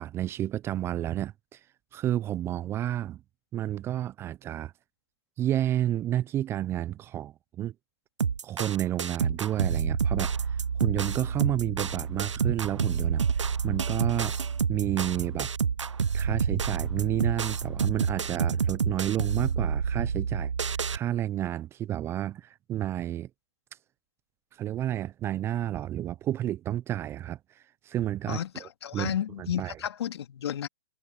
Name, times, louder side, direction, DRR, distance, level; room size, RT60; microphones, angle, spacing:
voice 1, 0.0-1.6 1.9-3.2 3.5-4.7 5.4-7.7 8.4-14.3 14.7-15.5 16.1-23.3 24.5-28.7 28.9-29.1 29.4-29.7, right 12 dB, 15° right, 0.5 m, -31 dB
sound 1, 8.2-21.0, right 6 dB, 90° right, 0.6 m, -28 dB
voice 2, 28.3-30.7, left 10 dB, 60° left, 2.4 m, -32 dB
hypercardioid pair, 130°, 15 cm